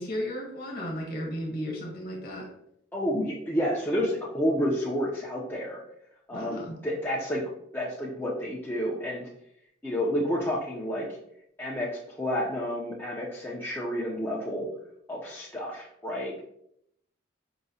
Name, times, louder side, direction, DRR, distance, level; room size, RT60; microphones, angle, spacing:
voice 1, 0.0-2.5 6.3-6.8, equal, 45° left, 0 dB, 1.0 m, -34 dB
voice 2, 2.9-5.8 6.3-7.4 7.7-9.3 9.8-11.1 11.6-14.7 15.1-16.4, equal, 10° left, -5 dB, 0.4 m, -30 dB
4.6 x 2.1 x 2.7 m, 0.74 s
head